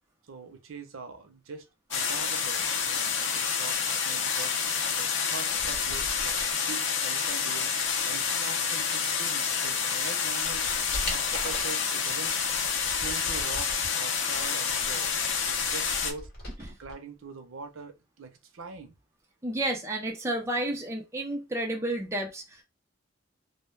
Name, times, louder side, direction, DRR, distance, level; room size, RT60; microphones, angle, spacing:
voice 1, 0.3-3.1 3.3-4.5 4.9-7.7 8.0-10.7 11.1-12.3 13.0-15.1 15.5-16.3 16.8-19.0, right 5 dB, 85° right, 0.6 m, -43 dB
sound 1, 1.9-16.1, left 6 dB, 65° left, 0.5 m, -28 dB
sound 2, 5.5-6.5 9.6-9.7 10.2-11.8 12.4-13.9 14.3-17.0 17.2-17.3, equal, 50° left, 1.1 m, -41 dB
voice 2, 19.4-22.6, right 1 dB, 15° right, 0.4 m, -31 dB
2.2 x 2.1 x 3.1 m
head